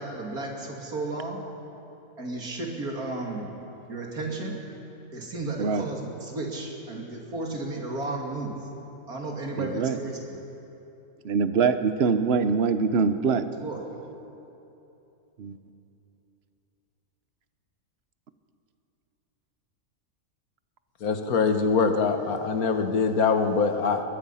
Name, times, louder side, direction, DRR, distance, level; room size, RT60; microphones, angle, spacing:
voice 1, 0.0-1.4 2.2-3.5 3.9-4.6 5.1-8.7 9.1-10.4 13.6-13.8, right 2 dB, 85° right, 0 dB, 3.1 m, -33 dB
voice 2, 9.6-10.0 11.2-13.5 15.4-15.6, right 5 dB, 50° right, 11 dB, 1.0 m, -24 dB
voice 3, 21.0-24.0, left 5 dB, 80° left, 7 dB, 1.7 m, -23 dB
22.0 x 21.5 x 5.7 m, 3.0 s
omnidirectional pair, 1.5 m